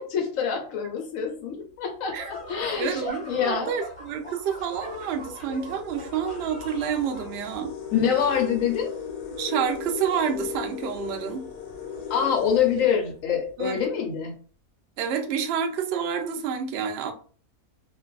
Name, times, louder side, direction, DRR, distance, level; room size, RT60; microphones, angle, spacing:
voice 1, 0.0-3.7 7.9-8.9 12.1-14.3, left 7 dB, 70° left, 4 dB, 0.9 m, -26 dB
sound 1, 2.2-2.5 3.3-3.4 3.8-13.6, left 7 dB, 90° left, 1.1 m, -38 dB
sound 2, 2.2-7.3, right 1 dB, 5° left, 1.1 m, -40 dB
voice 2, 2.8-7.7 9.4-11.5 13.6-13.8 15.0-17.1, right 7 dB, 70° right, 5 dB, 0.6 m, -28 dB
2.5 x 2.3 x 2.3 m, 0.42 s
omnidirectional pair, 1.6 m